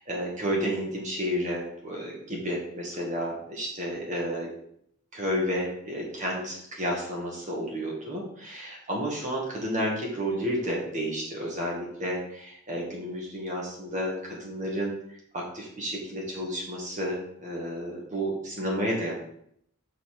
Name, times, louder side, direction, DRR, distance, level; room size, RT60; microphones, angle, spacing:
voice 1, 0.0-4.5 5.1-15.0 15.3-19.1, equal, 35° right, -2 dB, 1.9 m, -31 dB
5.8 x 5.4 x 6.0 m, 0.70 s
head